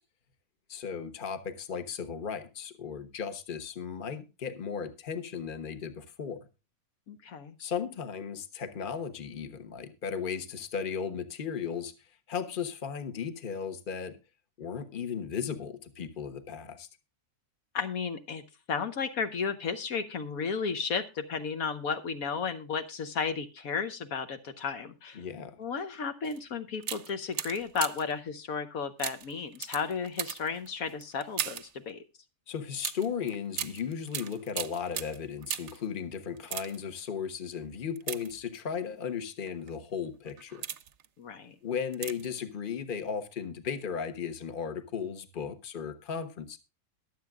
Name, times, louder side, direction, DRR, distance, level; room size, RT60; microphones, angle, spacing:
voice 1, 0.7-6.5 7.6-11.9 12.3-14.2 14.6-16.9 25.1-25.6 32.5-40.6 41.6-46.6, left 7 dB, 35° left, 1.2 m, -36 dB
voice 2, 7.1-7.5 17.7-18.4 18.7-25.2 25.6-32.0 41.2-41.5, left 5 dB, 70° left, 1.3 m, -33 dB
sound 1, 26.2-26.4 26.8-28.2 29.0-31.8 32.8-35.9 36.3-37.0 38.0-38.8 39.5-39.7 40.3-41.1 41.9-42.4 42.7-42.8, right 9 dB, 60° right, 0.9 m, -38 dB
22.0 x 7.7 x 2.4 m
omnidirectional pair, 1.6 m